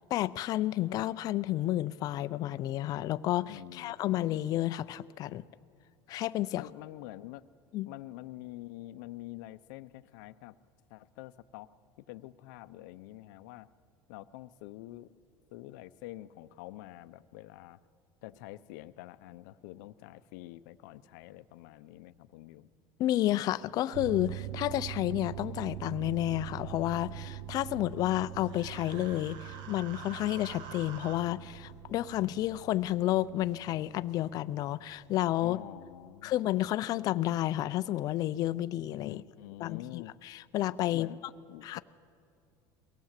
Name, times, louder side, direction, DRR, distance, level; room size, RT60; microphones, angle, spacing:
voice 1, 0.1-5.4 6.1-6.6 7.7-7.9 23.0-35.6 36.2-39.2 39.6-41.1 41.6-41.8, left 14 dB, 40° left, 14 dB, 0.4 m, -31 dB
voice 2, 3.5-3.9 6.5-7.4 7.9-10.5 10.9-11.7 12.0-13.7 14.1-15.1 15.5-17.8 18.2-22.7 35.4-36.3 39.0-40.1 40.9-41.2 41.5-41.8, left 16 dB, 85° left, 13 dB, 0.6 m, -46 dB
sound 1, 23.9-36.0 36.4-36.5, right 14 dB, 85° right, 0.5 m, -44 dB
Human voice, 28.4-31.2, right 7 dB, 50° right, 1.3 m, -47 dB
23.0 x 17.5 x 7.4 m, 2.4 s
cardioid pair, 155°, 10 cm